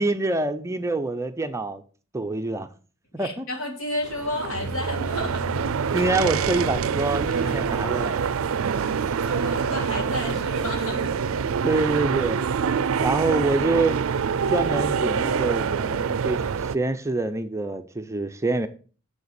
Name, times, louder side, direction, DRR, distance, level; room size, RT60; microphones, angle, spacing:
voice 1, 0.0-1.8 2.1-2.7 3.1-3.5 5.9-8.3 10.3-10.4 11.6-12.4 13.0-14.0 14.5-16.4 16.7-18.7, right 2 dB, 15° right, 0.6 m, -26 dB
voice 2, 3.2-5.4 5.9-6.0 9.2-11.1, left 1 dB, 80° left, 3.3 m, -31 dB
sound 1, 4.0-16.7, right 6 dB, 75° right, 0.4 m, -26 dB
sound 2, 4.5-10.8, right 1 dB, 40° left, 0.8 m, -38 dB
7.2 x 6.8 x 6.9 m
head